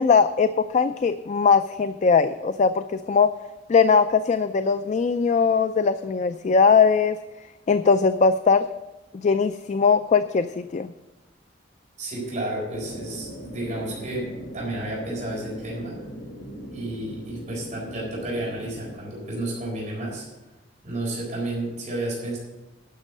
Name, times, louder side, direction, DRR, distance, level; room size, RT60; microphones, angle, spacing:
voice 1, 0.0-3.3 3.7-7.2 7.7-8.7 9.1-10.9, left 5 dB, 40° left, 11 dB, 0.4 m, -20 dB
voice 2, 12.0-14.3 14.5-16.0 16.7-20.3 20.8-22.4, right 1 dB, 40° right, -4 dB, 4.1 m, -31 dB
sound 1, 12.7-18.9, equal, 85° left, 3.9 m, -39 dB
12.0 x 6.3 x 7.3 m, 1.1 s
head